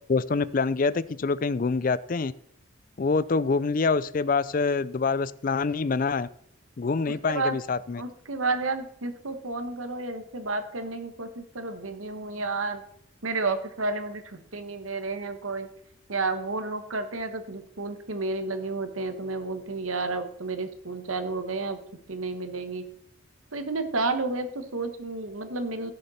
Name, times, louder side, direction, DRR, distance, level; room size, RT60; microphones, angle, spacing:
voice 1, 0.1-2.3 3.0-6.3 6.8-8.0, left 4 dB, 40° left, 17 dB, 0.4 m, -26 dB
voice 2, 7.1-7.6 8.0-12.8 13.2-15.7 16.1-21.8 22.1-22.9 23.5-25.9, right 3 dB, 85° right, 8 dB, 1.4 m, -31 dB
16.5 x 6.6 x 4.3 m, 0.72 s
head